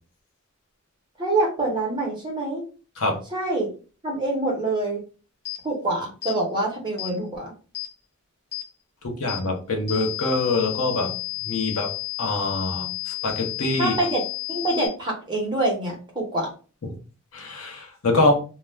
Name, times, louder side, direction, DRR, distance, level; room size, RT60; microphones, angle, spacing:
voice 1, 1.2-2.6 3.3-3.7 4.0-5.0 5.6-7.5 13.8-16.5, right 2 dB, 20° right, -2 dB, 0.8 m, -25 dB
sound 1, 5.4-5.6 6.2-6.4 7.0-7.1 7.7-7.9 8.5-8.7 9.3-9.4 9.9-14.9, left 21 dB, 45° left, 0.9 m, -32 dB
voice 2, 9.0-11.1 11.4-11.9 12.2-13.9 17.3-18.4, left 2 dB, 80° left, 2 dB, 0.8 m, -24 dB
2.3 x 2.2 x 3.1 m, 0.36 s
head